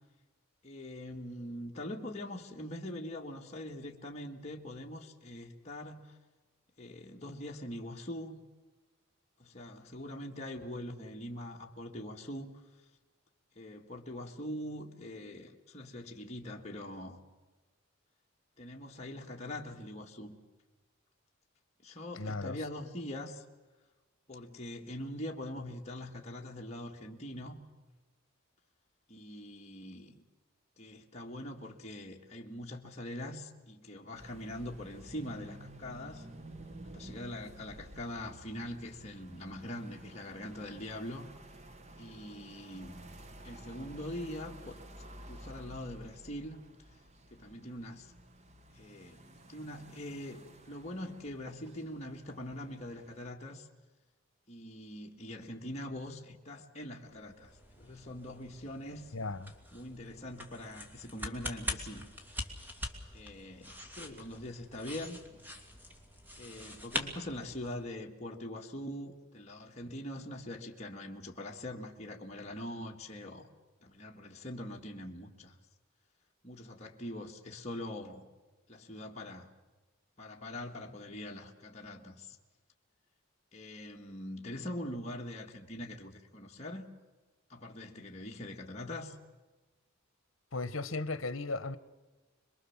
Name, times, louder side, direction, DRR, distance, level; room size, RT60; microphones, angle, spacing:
voice 1, 0.6-6.2 6.8-8.4 9.4-12.6 13.6-17.2 18.6-20.4 21.8-23.4 24.3-27.6 29.1-30.2 30.8-36.3 36.8-41.3 42.0-43.1 43.4-44.7 45.3-46.6 47.3-48.1 48.7-49.2 49.5-53.7 54.5-59.1 59.7-62.1 63.1-65.2 66.4-73.5 73.8-75.6 76.4-78.3 78.7-79.5 80.2-82.4 83.5-86.9 87.5-89.2, left 1 dB, 30° left, 2.0 m, -43 dB
voice 2, 22.1-22.6 59.1-59.5 90.5-91.8, left 3 dB, 70° left, 1.3 m, -36 dB
sound 1, 34.1-53.3, right 1 dB, 30° right, 1.3 m, -52 dB
sound 2, 57.1-67.9, left 1 dB, 10° right, 2.5 m, -44 dB
27.0 x 22.0 x 7.4 m
head